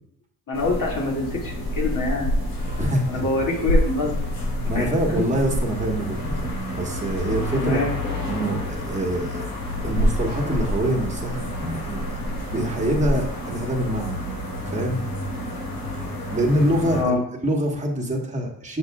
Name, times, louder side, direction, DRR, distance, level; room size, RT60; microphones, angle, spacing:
sound 1, 0.5-17.0, left 1 dB, 85° left, 2.2 m, -28 dB
voice 1, 0.5-2.3 3.1-4.2 4.7-5.2 7.5-7.9 16.9-17.2, left 2 dB, 45° left, -2 dB, 2.4 m, -25 dB
voice 2, 2.8-3.2 4.7-7.8 8.3-9.5 9.8-12.2 12.5-14.2 14.7-15.0 16.3-18.8, right 1 dB, 15° right, 0 dB, 1.5 m, -25 dB
6.9 x 6.3 x 2.4 m, 0.72 s
hypercardioid pair, 50°, 43 cm